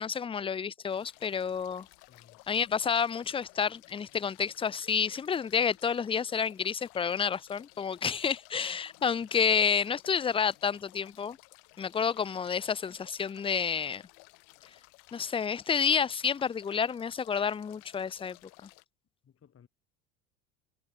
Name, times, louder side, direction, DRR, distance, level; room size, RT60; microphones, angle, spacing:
voice 1, 0.0-1.9 2.5-11.4 11.8-14.0 15.1-18.4, left 6 dB, 15° left, 0.5 m, -29 dB
sound 1, 0.9-18.8, left 39 dB, 65° left, 7.1 m, -56 dB
voice 2, 2.1-2.4 19.2-19.7, left 8 dB, 30° left, 4.8 m, -59 dB
hypercardioid pair, 85°, 42 cm